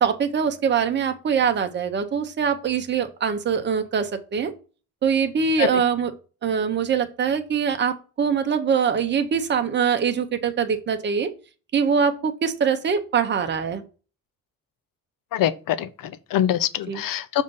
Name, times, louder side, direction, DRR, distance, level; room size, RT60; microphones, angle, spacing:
voice 1, 0.0-4.5 5.0-6.1 6.4-11.3 11.7-13.8 16.9-17.0, right 7 dB, 30° right, 0.7 m, -23 dB
voice 2, 15.3-17.4, left 11 dB, 70° left, 0.6 m, -24 dB
6.5 x 2.7 x 5.3 m
cardioid pair, 170°, 34 cm